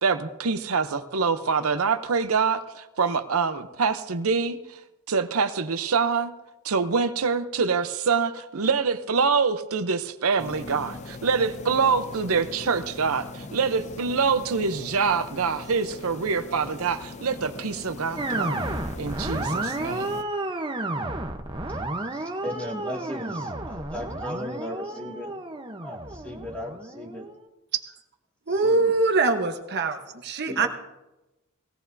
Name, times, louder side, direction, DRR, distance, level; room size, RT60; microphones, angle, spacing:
voice 1, 0.0-4.8 5.1-6.3 6.6-18.6 19.0-20.1, right 5 dB, 85° right, 9 dB, 0.7 m, -25 dB
sound 1, 10.4-20.2, left 3 dB, 30° left, 0.5 m, -40 dB
sound 2, 18.2-27.5, right 2 dB, 20° right, 0.9 m, -32 dB
voice 2, 21.7-25.3 25.8-27.2 28.5-28.8 30.5-30.7, left 1 dB, 5° left, -2 dB, 2.2 m, -37 dB
voice 3, 28.5-30.7, right 3 dB, 50° right, 5 dB, 1.1 m, -23 dB
19.0 x 17.5 x 2.7 m, 0.99 s
head